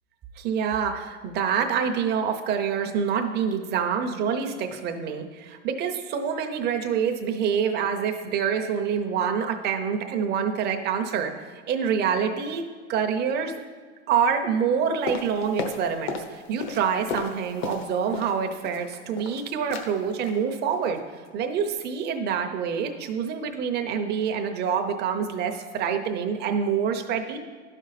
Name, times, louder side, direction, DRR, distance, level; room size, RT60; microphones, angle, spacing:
voice 1, 0.4-11.3 11.7-12.6 12.9-13.6 14.1-21.0 21.3-27.4, right 7 dB, 30° right, 5 dB, 0.8 m, -26 dB
sound 1, 15.1-16.3 16.6-18.4 18.6-19.4 19.7-19.9 20.2-20.4 20.7-21.0 21.2-21.3, left 4 dB, 60° left, 1.1 m, -34 dB
11.5 x 5.4 x 4.1 m, 1.5 s
supercardioid pair, 135°, 35 cm